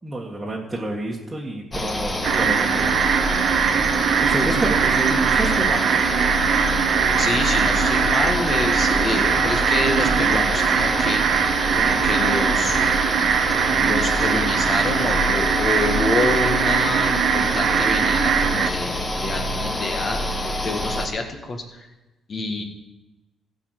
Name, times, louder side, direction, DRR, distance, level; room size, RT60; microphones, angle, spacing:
voice 1, 0.0-3.1 4.2-6.0, right 1 dB, 15° right, -4 dB, 1.6 m, -28 dB
sound 1, 1.7-21.1, left 1 dB, 20° left, 1.4 m, -26 dB
sound 2, 2.2-18.7, right 8 dB, 80° right, 0.7 m, -21 dB
voice 2, 7.2-11.2 11.7-12.8 13.8-21.9 22.3-22.6, left 3 dB, 45° left, 4 dB, 1.8 m, -27 dB
14.5 x 5.5 x 6.5 m, 1.1 s
cardioid pair, 90°, 0 cm